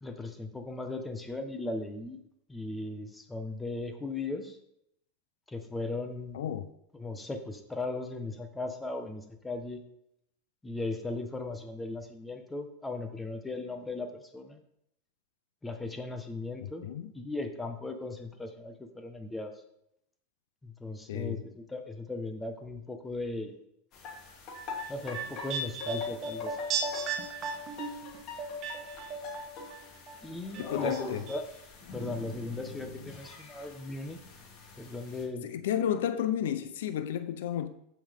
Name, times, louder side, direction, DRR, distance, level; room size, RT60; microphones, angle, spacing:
voice 1, 0.0-2.2 2.5-4.6 5.5-6.5 6.9-9.8 10.6-14.6 15.6-19.5 20.6-23.5 24.9-26.6 30.2-31.5 31.9-34.2 34.8-35.5, left 2 dB, 10° left, 1.3 m, -37 dB
voice 2, 6.3-6.7 16.8-17.1 21.1-21.4 30.6-31.2 35.4-37.7, left 10 dB, 80° left, 0.6 m, -32 dB
sound 1, 23.9-35.2, left 3 dB, 45° left, 2.6 m, -44 dB
sound 2, 24.5-29.8 30.1-31.0 31.3-31.4, right 3 dB, 35° right, 1.6 m, -35 dB
15.0 x 5.9 x 3.6 m
supercardioid pair, 130°, 0 cm